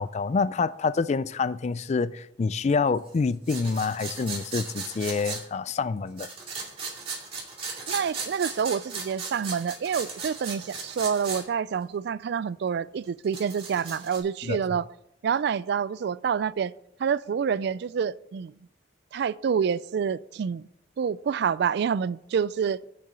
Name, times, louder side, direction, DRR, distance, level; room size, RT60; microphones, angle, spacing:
voice 1, 0.0-6.3 14.4-14.8, left 4 dB, 40° left, 0.4 m, -27 dB
sound 1, 3.5-5.4 6.2-11.4 11.7-11.8 13.0-14.2, right 4 dB, 35° right, 2.5 m, -36 dB
voice 2, 7.9-14.9 15.2-16.7 17.0-18.5 19.1-20.7 21.0-22.8, right 7 dB, 65° right, 0.3 m, -27 dB
6.9 x 6.6 x 7.6 m
head